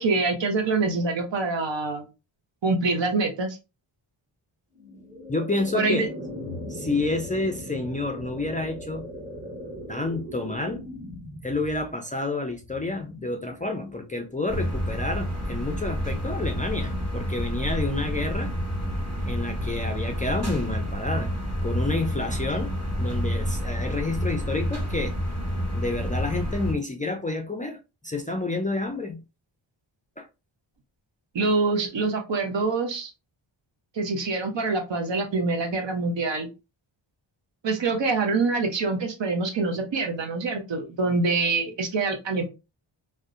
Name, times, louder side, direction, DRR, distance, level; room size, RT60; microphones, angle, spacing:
voice 1, 0.0-2.1 2.6-3.6 5.7-6.1 31.3-33.1 33.9-36.5 37.6-42.4, right 3 dB, 60° right, 0.8 m, -25 dB
sound 1, 4.8-15.9, left 1 dB, 15° right, 1.0 m, -40 dB
voice 2, 5.3-6.1 6.7-9.1 9.9-10.8 11.4-18.5 19.2-21.3 21.6-25.2 25.7-27.8 28.0-29.2 30.2-30.3, left 2 dB, 15° left, 0.4 m, -29 dB
sound 2, 14.5-26.7, equal, 30° right, 1.4 m, -29 dB
2.6 x 2.1 x 2.4 m
cardioid pair, 50°, 49 cm